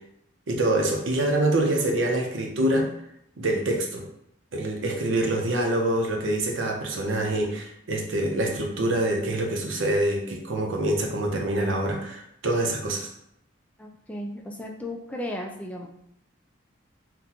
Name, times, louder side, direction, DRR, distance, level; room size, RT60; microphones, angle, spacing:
voice 1, 0.5-2.9 3.4-4.0 4.5-13.1, right 1 dB, 80° right, 1 dB, 0.7 m, -25 dB
voice 2, 13.8-15.9, left 1 dB, 5° left, 1 dB, 0.3 m, -35 dB
3.8 x 2.2 x 2.9 m, 0.75 s
head